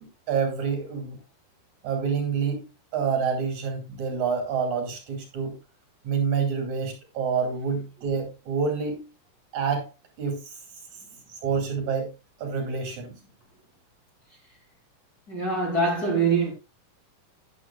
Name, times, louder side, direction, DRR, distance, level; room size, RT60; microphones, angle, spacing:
voice 1, 0.3-1.2 1.8-2.6 2.9-5.6 6.0-9.1 9.5-9.9 10.2-10.5 11.3-12.1 12.4-13.1, right 6 dB, 60° right, 3.8 m, -27 dB
voice 2, 15.3-16.5, right 3 dB, 30° left, 2.9 m, -23 dB
13.5 x 9.6 x 2.3 m
omnidirectional pair, 4.0 m